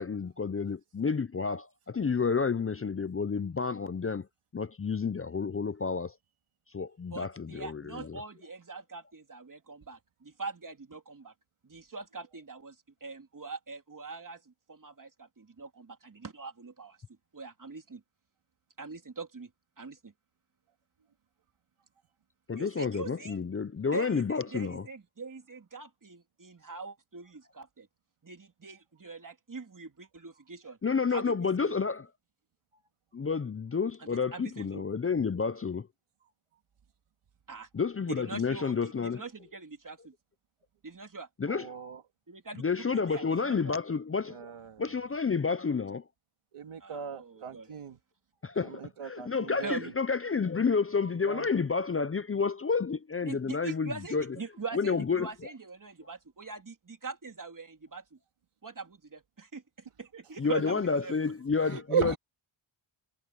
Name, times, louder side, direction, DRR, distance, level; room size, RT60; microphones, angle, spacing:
voice 1, 0.0-4.3 4.5-6.1 6.7-8.2 22.5-24.8 30.8-32.1 33.1-35.9 37.7-39.2 41.4-41.7 42.6-44.5 44.8-46.0 48.4-54.2 54.7-55.3 60.4-62.2, left 5 dB, 30° left, 0.6 m, -30 dB
voice 2, 7.1-11.3 11.6-17.0 17.3-18.0 18.8-19.5 19.8-20.1 22.5-23.4 23.9-27.9 28.2-30.8 31.1-31.4 31.6-31.7 34.0-34.8 37.5-37.7 38.1-40.1 40.8-41.3 42.3-43.8 46.8-47.7 49.6-49.9 53.2-58.2 58.6-61.1, right 4 dB, 40° right, 3.2 m, -43 dB
voice 3, 41.5-42.0 42.9-43.3 44.3-45.0 46.5-48.0 48.6-49.9 51.2-51.7 61.6-62.2, right 8 dB, 90° right, 2.9 m, -37 dB
wide cardioid pair, 80°, 49 cm